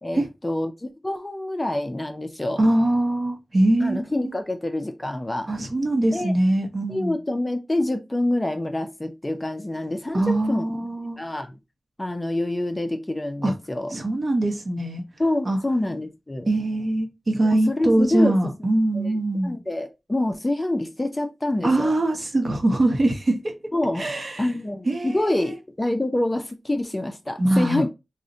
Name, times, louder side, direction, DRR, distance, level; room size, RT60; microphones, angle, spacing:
voice 1, 0.0-2.6 3.8-5.5 6.1-6.3 6.9-10.7 11.2-11.6 12.0-13.9 15.2-16.5 17.4-18.3 18.9-19.1 19.4-21.9 23.7-24.0 24.4-27.9, left 1 dB, 20° left, 0.4 m, -26 dB
voice 2, 2.6-4.4 5.5-7.1 10.1-11.2 13.4-13.5 13.9-15.0 15.4-15.6 16.5-19.6 21.6-23.5 24.0-24.5 24.9-25.6 27.4-27.8, right 1 dB, 45° right, 0.7 m, -22 dB
3.8 x 2.0 x 2.6 m
wide cardioid pair, 105°, 0 cm